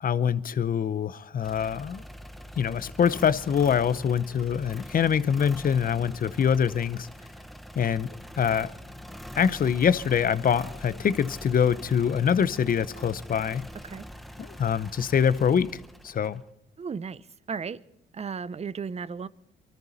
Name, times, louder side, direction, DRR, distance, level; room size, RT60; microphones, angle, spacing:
voice 1, 0.0-2.0 2.6-7.1 7.8-8.1 8.4-8.7 9.4-13.7 14.4-16.4, left 7 dB, 45° left, 0.8 m, -24 dB
sound 1, 1.4-16.5, equal, ahead, 0.9 m, -43 dB
voice 2, 16.8-17.8 18.1-19.3, right 6 dB, 30° right, 0.7 m, -35 dB
24.0 x 13.5 x 4.2 m
cardioid pair, 90°, 20 cm